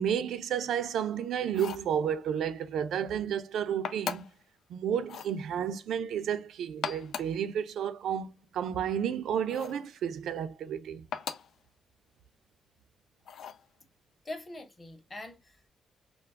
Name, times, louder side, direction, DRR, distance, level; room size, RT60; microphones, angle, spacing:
voice 1, 0.0-4.2 4.7-11.0, right 8 dB, 85° right, 0.3 m, -31 dB
sound 1, 1.5-1.9 3.8-4.4 5.0-5.4 6.7-7.4 9.5-9.9 11.1-11.6 13.3-13.7, left 7 dB, 75° left, 0.4 m, -38 dB
voice 2, 14.2-15.7, left 1 dB, 25° left, 0.8 m, -43 dB
2.2 x 2.2 x 3.3 m
cardioid pair, 125°, 0 cm